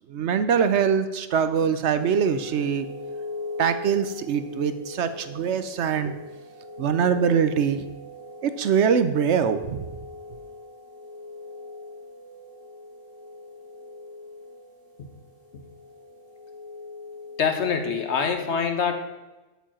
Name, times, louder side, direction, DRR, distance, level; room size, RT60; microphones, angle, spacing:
voice 1, 0.1-2.9 3.6-6.1 6.8-7.8 8.4-9.9, right 7 dB, 65° right, 11 dB, 0.9 m, -23 dB
sound 1, 2.0-18.3, left 3 dB, 80° left, 2.4 m, -41 dB
voice 2, 17.4-18.9, left 6 dB, 65° left, 6 dB, 1.3 m, -25 dB
8.6 x 5.6 x 7.5 m, 1.1 s
omnidirectional pair, 1.3 m